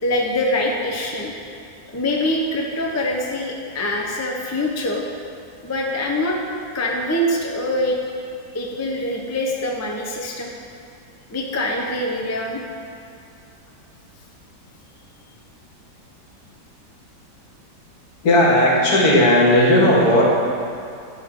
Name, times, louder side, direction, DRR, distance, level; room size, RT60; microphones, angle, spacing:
voice 1, 0.0-1.3 1.9-5.0 5.6-6.4 6.7-8.0 8.5-10.5 11.3-12.6, left 1 dB, 20° left, -1 dB, 0.4 m, -24 dB
voice 2, 18.2-20.2, left 1 dB, 60° left, -6 dB, 2.5 m, -15 dB
11.5 x 3.9 x 6.6 m, 2.5 s
omnidirectional pair, 1.9 m